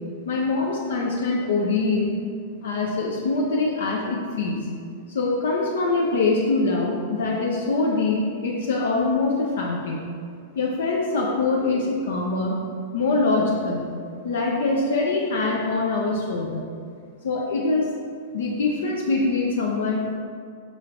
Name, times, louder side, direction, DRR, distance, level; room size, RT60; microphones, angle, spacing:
voice 1, 0.3-2.1 2.6-4.6 5.1-10.0 10.6-12.6 12.9-13.9 14.2-16.7 17.2-17.9 18.3-20.2, left 3 dB, 65° left, -2 dB, 0.4 m, -23 dB
4.8 x 3.1 x 2.5 m, 2.1 s
figure-of-eight pair, 95°, 0 cm